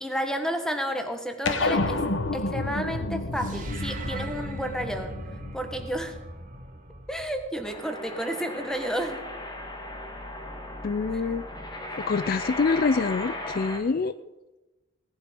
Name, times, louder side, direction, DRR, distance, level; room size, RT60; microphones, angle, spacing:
voice 1, 0.0-2.0 2.3-5.2 5.5-6.1 7.1-9.2, equal, 5° left, 5 dB, 1.6 m, -31 dB
sound 1, 1.5-6.2, left 2 dB, 70° left, 1.0 m, -30 dB
sound 2, 3.4-7.8, right 1 dB, 45° right, 2.4 m, -39 dB
sound 3, 7.6-13.8, left 1 dB, 20° left, 1.9 m, -36 dB
voice 2, 10.8-11.4 12.0-14.2, left 4 dB, 50° left, 14 dB, 0.4 m, -25 dB
18.0 x 11.0 x 5.3 m, 1.1 s
head